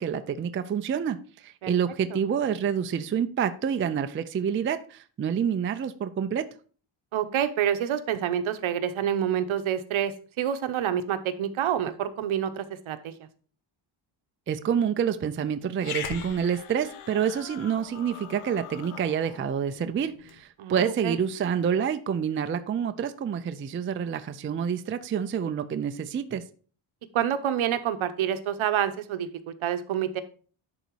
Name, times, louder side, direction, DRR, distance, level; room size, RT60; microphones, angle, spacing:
voice 1, 0.0-6.5 14.5-26.4, right 8 dB, 30° right, 10 dB, 0.3 m, -28 dB
voice 2, 7.1-13.1 20.6-21.2 27.1-30.2, right 9 dB, 70° right, 10 dB, 0.9 m, -28 dB
Growling, 15.8-20.4, left 8 dB, 90° left, 0.9 m, -41 dB
10.5 x 4.0 x 4.6 m, 0.41 s
wide cardioid pair, 170°, 49 cm